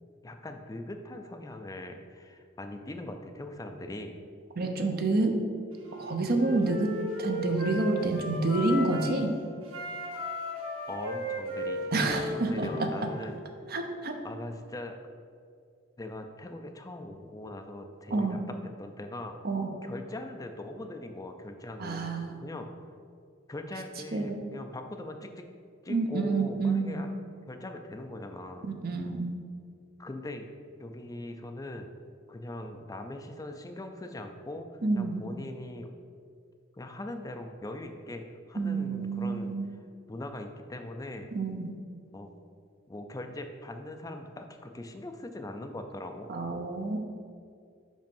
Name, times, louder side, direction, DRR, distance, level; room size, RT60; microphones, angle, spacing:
voice 1, 0.2-4.2 10.9-13.4 14.2-15.0 16.0-19.4 19.8-22.7 23.5-25.4 25.8-27.1 27.5-28.7 30.0-30.5 30.8-32.0 32.3-34.7 34.9-35.9 36.8-39.5 40.1-41.3 42.1-42.3 42.9-46.3, left 1 dB, 15° left, 5 dB, 0.4 m, -41 dB
voice 2, 4.6-5.4 6.0-6.9 7.2-9.3 11.9-12.9 13.7-14.2 18.1-18.4 19.4-19.7 21.8-22.3 24.1-24.4 25.9-27.0 28.6-29.4 34.8-35.2 38.6-39.7 41.3-41.7 46.3-47.0, right 3 dB, 50° right, 4 dB, 0.7 m, -28 dB
Wind instrument woodwind instrument, 5.8-9.2 9.7-13.3, equal, 85° right, 1.6 m, -35 dB
5.3 x 4.9 x 5.3 m, 2.2 s
head